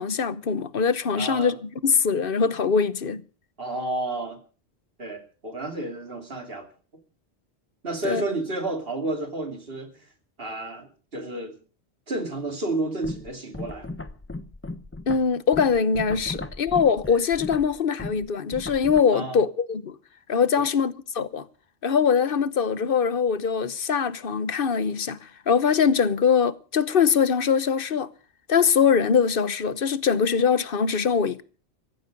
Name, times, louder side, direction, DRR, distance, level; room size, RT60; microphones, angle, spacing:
voice 1, 0.0-3.2 8.0-8.2 15.1-20.0 20.3-21.5 21.8-28.1 28.5-31.4, left 6 dB, 55° left, 1.1 m, -22 dB
voice 2, 1.2-1.5 3.6-4.4 5.0-6.7 7.8-9.9 10.4-11.6 12.1-13.9 16.3-16.4 19.1-19.4 20.6-20.7, right 2 dB, 60° right, 2.9 m, -31 dB
sound 1, 13.0-19.0, left 2 dB, 15° left, 0.8 m, -37 dB
16.5 x 15.0 x 5.3 m
omnidirectional pair, 1.1 m